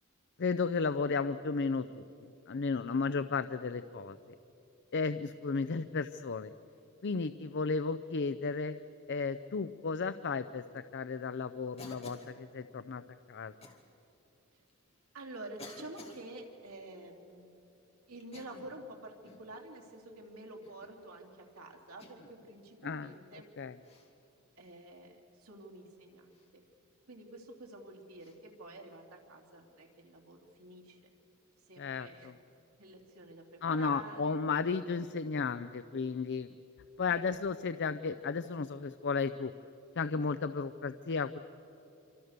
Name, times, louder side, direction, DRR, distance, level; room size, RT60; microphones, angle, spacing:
voice 1, 0.4-2.0 2.5-4.2 4.9-6.5 7.0-8.8 9.1-13.0 13.3-13.5 22.8-23.8 31.8-32.3 33.6-36.5 37.0-39.5 40.0-41.4, left 4 dB, 55° left, 12 dB, 0.6 m, -34 dB
Cough, 11.8-12.4 13.6-13.8 14.7-14.8 15.6-16.2 18.2-18.8 19.2-19.5 20.6-21.0 22.0-22.4 23.8-24.1 26.3-26.5 28.2-28.4, left 2 dB, 30° left, 2.6 m, -52 dB
voice 2, 15.1-17.5 18.1-23.5 24.6-26.6 27.1-31.0 31.7-32.3 32.8-34.4 37.1-37.2, right 2 dB, 85° right, 1 dB, 3.3 m, -49 dB
27.0 x 25.0 x 6.7 m, 2.9 s
head